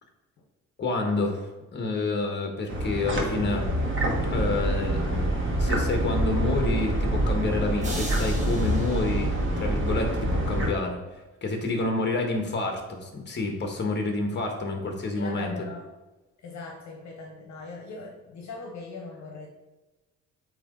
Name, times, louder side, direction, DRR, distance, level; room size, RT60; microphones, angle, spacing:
voice 1, 0.8-3.7 4.3-5.3 5.6-11.0 11.4-15.7, left 2 dB, 35° left, 3 dB, 1.4 m, -28 dB
sound 1, 2.7-10.7, right 1 dB, 40° right, 1.5 m, -26 dB
sound 2, 7.8-10.1, right 1 dB, 25° right, 1.6 m, -39 dB
voice 2, 10.3-10.7 15.1-15.9 16.4-19.5, left 4 dB, 65° left, 1 dB, 1.1 m, -41 dB
8.2 x 3.1 x 3.9 m, 1.1 s
cardioid pair, 90°, 30 cm